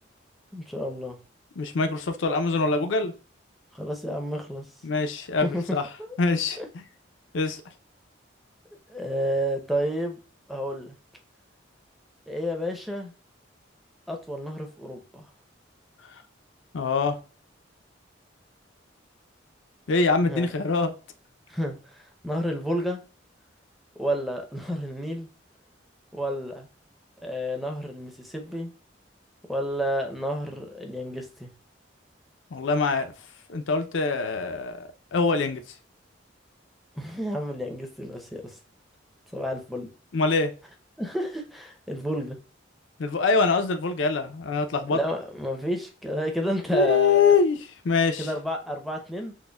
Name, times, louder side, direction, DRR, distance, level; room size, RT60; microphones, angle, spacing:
voice 1, 0.5-1.2 3.7-4.7 5.4-5.8 6.6-6.7 8.9-10.2 10.5-10.9 12.3-13.1 14.1-15.3 20.3-20.5 21.5-23.0 24.0-25.3 26.1-26.7 27.2-28.7 29.5-31.5 37.0-38.6 39.3-39.9 41.0-42.4 44.9-47.4 48.2-49.3, equal, ahead, 2 dB, 0.5 m, -30 dB
voice 2, 1.6-3.1 4.8-5.5 5.7-5.8 6.2-6.6 7.3-7.6 16.7-17.2 19.9-20.9 32.5-33.1 33.5-34.8 35.1-35.6 40.1-40.5 43.0-45.0 46.7-47.6 47.8-48.3, left 4 dB, 75° left, 7 dB, 0.5 m, -23 dB
6.2 x 2.1 x 2.2 m, 0.35 s
head